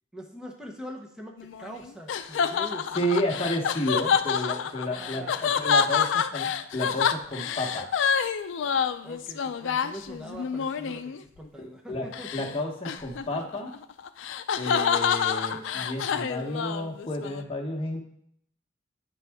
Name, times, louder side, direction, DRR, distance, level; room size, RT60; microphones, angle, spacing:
voice 1, 0.1-3.4 4.8-5.6 9.0-12.3, equal, 5° right, 0 dB, 0.8 m, -43 dB
sound 1, 1.4-11.2 12.1-12.5 12.8-17.4, left 7 dB, 80° left, 0.4 m, -27 dB
voice 2, 2.9-7.9 11.6-13.8 14.6-18.0, left 1 dB, 30° left, 0 dB, 1.1 m, -31 dB
8.8 x 4.1 x 3.5 m, 0.68 s
head